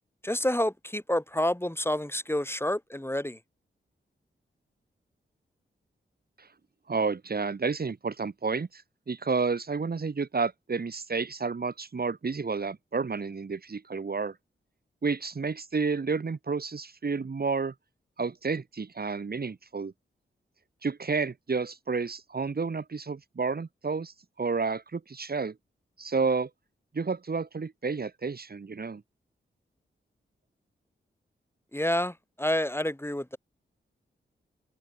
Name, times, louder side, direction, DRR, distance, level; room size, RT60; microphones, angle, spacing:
voice 1, 0.2-3.4 31.7-33.4, left 1 dB, 10° left, 5.8 m, -29 dB
voice 2, 6.9-8.8 9.1-14.3 15.0-17.7 18.2-19.9 20.8-25.5 26.0-26.5 26.9-29.0, right 4 dB, 45° right, 1.5 m, -30 dB
cardioid pair, 40°, 21 cm